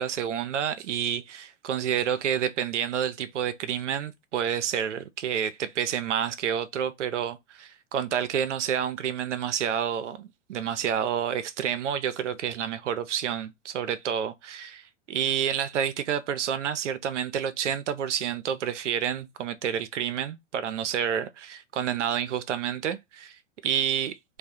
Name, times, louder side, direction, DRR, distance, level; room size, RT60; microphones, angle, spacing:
voice 1, 0.0-24.4, right 9 dB, 80° right, 0.5 m, -29 dB
2.2 x 2.1 x 2.7 m
hypercardioid pair, 105°, 36 cm